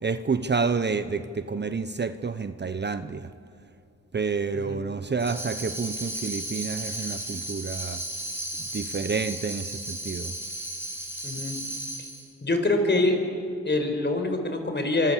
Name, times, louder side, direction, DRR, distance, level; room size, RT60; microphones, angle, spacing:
voice 1, 0.0-3.3 4.1-8.0 8.7-10.3, right 4 dB, 35° right, 11 dB, 0.9 m, -29 dB
Tambourine, 5.2-12.3, right 1 dB, 5° right, 6.4 m, -35 dB
voice 2, 11.2-11.6 12.4-13.2 13.6-15.1, left 2 dB, 35° left, 5 dB, 5.0 m, -25 dB
25.0 x 25.0 x 7.5 m, 2.5 s
cardioid pair, 65°, 31 cm